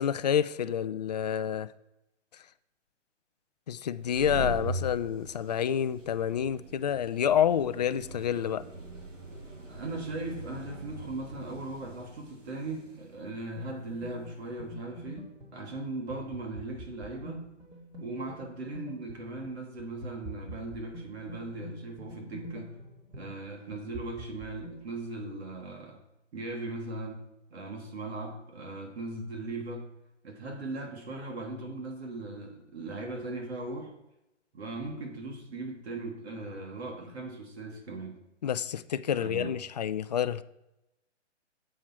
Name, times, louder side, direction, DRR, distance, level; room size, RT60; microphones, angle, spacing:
voice 1, 0.0-1.7 3.7-8.6 38.4-40.4, left 9 dB, 35° left, 14 dB, 0.4 m, -28 dB
sound 1, 3.9-14.4, right 2 dB, 90° right, 2.7 m, -42 dB
voice 2, 9.7-17.5 18.0-22.8 23.1-26.0 26.3-27.2 27.5-29.9 30.2-33.9 34.5-38.2 39.1-39.6, right 2 dB, 55° right, 1 dB, 2.6 m, -38 dB
sound 2, 13.6-24.8, equal, 15° right, 2.3 m, -46 dB
10.5 x 7.5 x 4.5 m, 0.91 s
hypercardioid pair, 140°, 37 cm